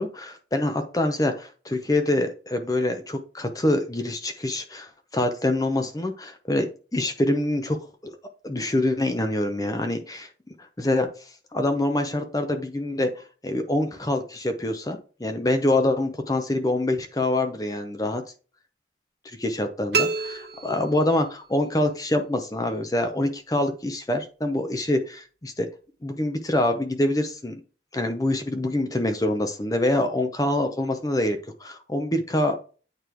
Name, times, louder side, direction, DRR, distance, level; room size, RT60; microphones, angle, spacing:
voice 1, 0.0-8.2 8.4-10.3 10.6-18.2 19.2-25.7 26.0-27.6 27.9-32.6, left 1 dB, 20° left, 7 dB, 0.7 m, -25 dB
sound 1, 19.9-21.5, right 4 dB, 65° right, 0.9 m, -28 dB
9.0 x 3.2 x 4.5 m, 0.36 s
head